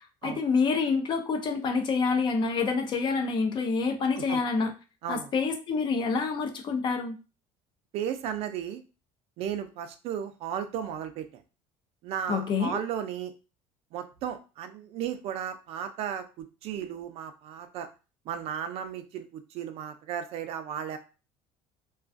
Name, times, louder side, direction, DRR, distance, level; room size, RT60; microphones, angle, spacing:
voice 1, 0.2-4.7 5.1-7.2 12.3-12.8, left 4 dB, 40° left, 5 dB, 0.5 m, -27 dB
voice 2, 5.0-5.3 7.9-8.8 9.4-11.4 12.0-13.3 13.9-17.9 18.3-21.0, right 9 dB, 55° right, 9 dB, 0.4 m, -35 dB
2.3 x 2.3 x 2.4 m, 0.32 s
cardioid pair, 125°, 12 cm